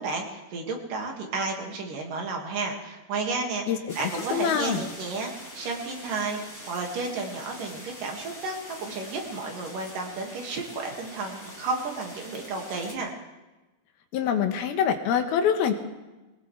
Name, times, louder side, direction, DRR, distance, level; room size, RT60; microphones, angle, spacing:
voice 1, 0.0-6.4 6.7-13.1, right 3 dB, 65° right, 1 dB, 3.5 m, -32 dB
voice 2, 3.7-4.8 14.1-15.7, left 8 dB, 80° left, 6 dB, 3.0 m, -25 dB
sound 1, 3.9-13.0, left 1 dB, 5° left, 2.6 m, -44 dB
22.0 x 19.0 x 3.3 m, 1.1 s
omnidirectional pair, 4.3 m